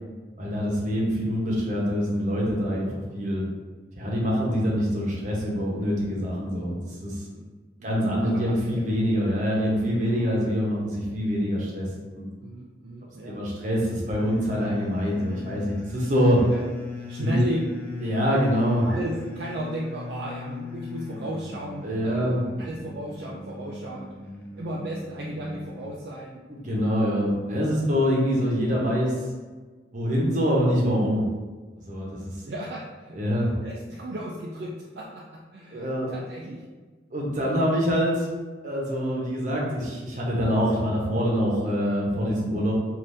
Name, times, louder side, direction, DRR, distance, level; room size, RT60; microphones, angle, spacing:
voice 1, 0.4-2.9 3.1-3.4 4.0-6.7 7.0-7.2 7.8-11.9 12.1-12.3 13.3-16.4 17.2-17.4 18.0-18.9 21.8-22.5 26.5-29.1 29.9-31.2 31.7-32.3 33.1-33.5 35.7-36.1 37.1-38.3 38.6-42.7, equal, 45° right, -4 dB, 0.8 m, -25 dB
voice 2, 7.8-8.4 8.7-8.9 12.4-13.5 16.5-16.7 17.0-17.6 18.8-24.1 24.6-26.4 27.7-28.0 32.5-33.2 33.6-36.6, right 1 dB, 60° right, -4 dB, 0.4 m, -35 dB
sound 1, 14.2-26.1, left 3 dB, 10° left, 0.3 m, -39 dB
3.4 x 2.5 x 2.6 m, 1.4 s
head